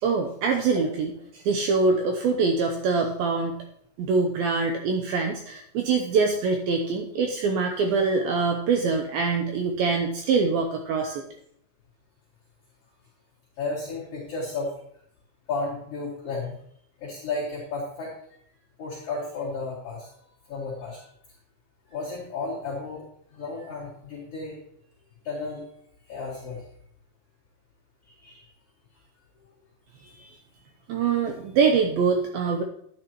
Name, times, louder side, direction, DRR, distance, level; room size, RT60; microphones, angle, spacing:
voice 1, 0.0-3.6 4.0-11.2 30.0-30.4 30.9-32.6, right 4 dB, 85° right, 4 dB, 2.1 m, -24 dB
voice 2, 13.6-14.8 15.5-16.6 17.0-18.1 18.8-20.1 20.5-21.1 21.9-23.0 23.3-24.6 25.2-25.6 26.1-26.6 28.1-28.4, left 3 dB, 40° left, -7 dB, 2.8 m, -33 dB
10.5 x 10.5 x 3.0 m, 0.69 s
omnidirectional pair, 5.2 m